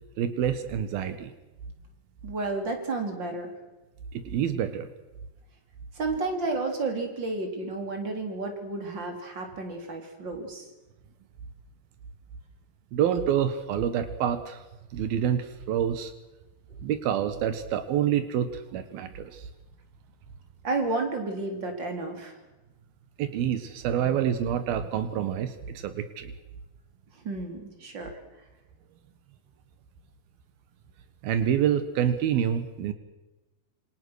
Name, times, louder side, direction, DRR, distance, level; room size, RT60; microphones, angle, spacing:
voice 1, 0.2-1.3 4.1-4.9 12.9-14.6 14.9-16.1 16.8-19.5 23.2-26.3 31.2-32.9, right 9 dB, 85° right, 10 dB, 3.3 m, -27 dB
voice 2, 2.2-3.5 5.9-10.7 20.6-22.3 27.1-28.1, right 3 dB, 30° right, 4 dB, 4.3 m, -31 dB
27.0 x 26.5 x 6.4 m, 1.1 s
omnidirectional pair, 4.2 m